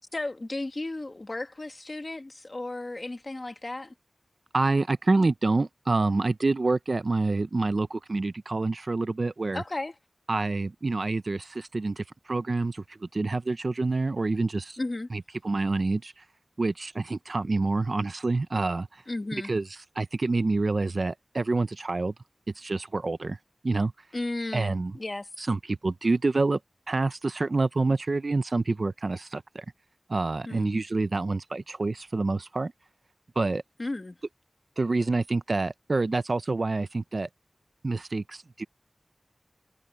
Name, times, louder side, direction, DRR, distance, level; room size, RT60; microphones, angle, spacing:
voice 1, 0.1-3.9 9.5-9.9 14.8-15.1 19.1-19.5 24.1-25.3 30.5-30.8 33.8-34.2, left 2 dB, 45° left, 1.8 m, -34 dB
voice 2, 4.5-9.6 10.3-14.8 15.1-16.2 16.6-19.0 19.4-22.1 22.6-23.4 23.6-23.9 24.5-24.9 25.4-26.6 26.9-29.6 30.1-32.7 33.4-33.6 34.8-37.3 37.8-38.6, right 3 dB, 65° right, 0.6 m, -27 dB
wide cardioid pair, 60°, 0 cm